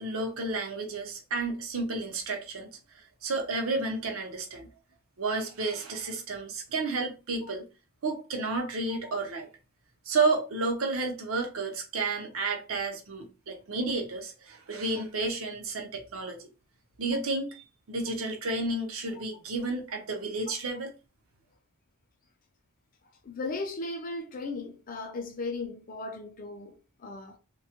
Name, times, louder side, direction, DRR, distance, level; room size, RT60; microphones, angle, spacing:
voice 1, 0.0-2.7 3.2-4.7 5.2-7.7 8.0-9.5 10.1-16.4 17.0-20.9, right 3 dB, 70° right, 0.6 m, -31 dB
voice 2, 23.2-27.4, left 3 dB, 40° left, 0.4 m, -37 dB
2.2 x 2.0 x 2.8 m
head